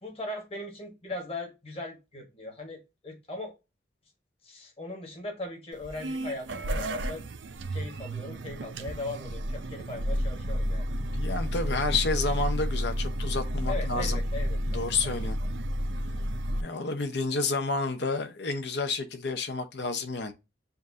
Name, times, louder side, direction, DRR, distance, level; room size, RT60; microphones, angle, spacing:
voice 1, 0.0-3.5 4.4-7.2 7.7-10.9 13.7-15.3 16.0-16.3, left 2 dB, 30° left, 1.4 m, -39 dB
sound 1, 5.7-16.6, equal, 75° right, 0.5 m, -31 dB
voice 2, 11.0-14.2 14.7-15.4 16.6-20.3, left 3 dB, 60° left, 0.7 m, -30 dB
6.9 x 2.5 x 2.7 m
head